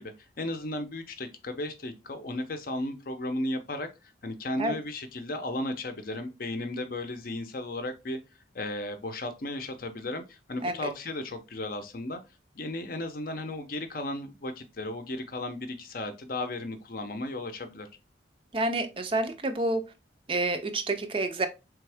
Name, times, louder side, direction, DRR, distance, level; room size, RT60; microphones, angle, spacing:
voice 1, 0.0-3.9 4.2-8.2 8.5-12.2 12.6-17.9, left 1 dB, 50° left, 0.6 m, -35 dB
voice 2, 18.5-19.9 20.3-21.5, right 2 dB, 30° right, 0.4 m, -29 dB
3.5 x 3.4 x 3.3 m
head